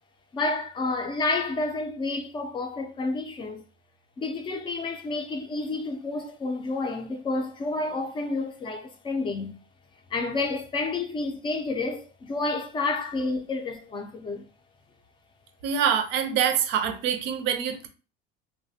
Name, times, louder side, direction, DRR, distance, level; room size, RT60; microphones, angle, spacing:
voice 1, 0.3-3.7 4.2-9.6 10.1-14.4, left 3 dB, 25° left, 0.4 m, -30 dB
voice 2, 15.6-17.9, right 8 dB, 55° right, 0.5 m, -25 dB
3.2 x 2.1 x 2.7 m
cardioid pair, 150°, 21 cm